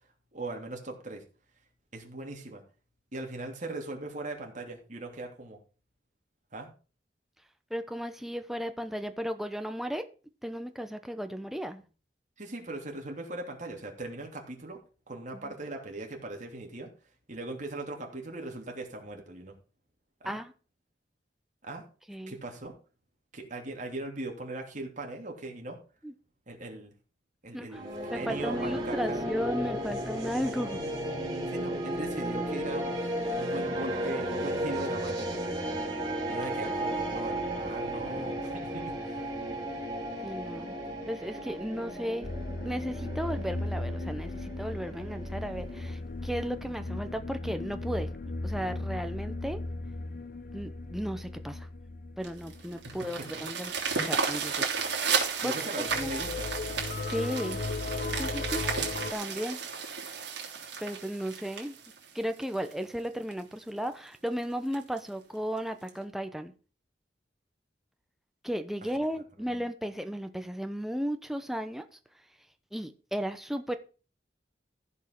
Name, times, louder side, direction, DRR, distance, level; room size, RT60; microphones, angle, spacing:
voice 1, 0.3-1.2 1.9-2.6 3.1-5.6 6.5-6.7 12.4-14.8 15.1-16.9 17.3-19.6 20.2-20.4 21.6-21.8 22.3-22.7 23.3-25.8 26.5-26.9 27.4-29.3 31.5-35.3 36.3-39.3 55.4-56.5 68.8-68.9, right 2 dB, 45° right, 3.0 m, -39 dB
voice 2, 7.7-10.1 10.4-11.8 15.3-15.5 20.2-20.5 22.1-22.4 26.0-26.1 27.5-27.8 28.1-30.8 40.2-40.8 41.1-42.3 42.6-48.1 48.4-49.6 50.5-51.7 52.2-53.7 54.0-54.8 55.4-55.5 56.0-56.2 57.1-57.6 58.2-58.6 59.1-59.6 60.8-61.8 62.1-66.5 68.4-71.9 72.7-73.8, equal, ahead, 0.9 m, -35 dB
sound 1, 27.7-45.9, right 1 dB, 25° right, 3.8 m, -34 dB
sound 2, 42.2-53.5 53.8-54.0 54.3-54.5 55.8-59.1, left 2 dB, 50° left, 0.7 m, -36 dB
sound 3, 52.2-62.7 63.3-63.4 63.8-63.9 64.3-64.4 64.7-65.0 65.9-66.0, right 5 dB, 70° right, 3.2 m, -33 dB
14.5 x 5.4 x 6.0 m
head